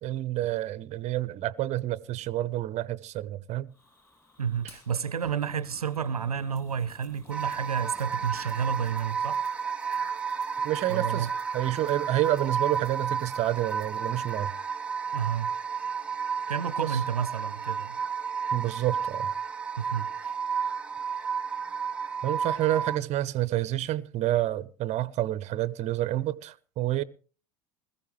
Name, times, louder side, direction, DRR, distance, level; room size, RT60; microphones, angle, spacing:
voice 1, 0.0-3.7 10.6-11.3 11.5-14.5 16.8-16.9 18.5-19.3 22.2-27.0, right 14 dB, 40° right, 0.8 m, -29 dB
Fire, 3.7-9.0, left 1 dB, 10° left, 7.3 m, -55 dB
voice 2, 4.4-9.4 10.9-11.3 15.1-15.5 16.5-18.0 19.8-20.3, right 7 dB, 85° right, 0.7 m, -31 dB
sound 1, 6.6-14.3, left 4 dB, 45° left, 6.4 m, -64 dB
sound 2, 7.3-23.0, right 6 dB, 5° right, 1.2 m, -32 dB
21.0 x 15.0 x 3.2 m
figure-of-eight pair, 75°, 19 cm